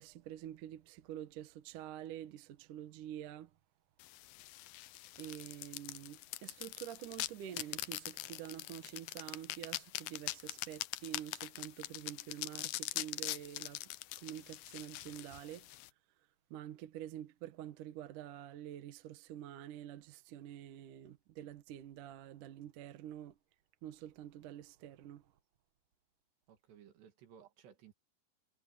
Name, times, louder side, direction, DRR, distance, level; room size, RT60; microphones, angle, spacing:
voice 1, 0.0-3.5 5.2-13.9 14.2-15.7 16.5-23.4 23.8-25.3, right 11 dB, 60° right, 2.5 m, -47 dB
sound 1, 4.0-15.9, left 17 dB, 90° left, 2.0 m, -43 dB
voice 2, 26.5-27.9, right 8 dB, 80° right, 4.4 m, -59 dB
omnidirectional pair, 4.8 m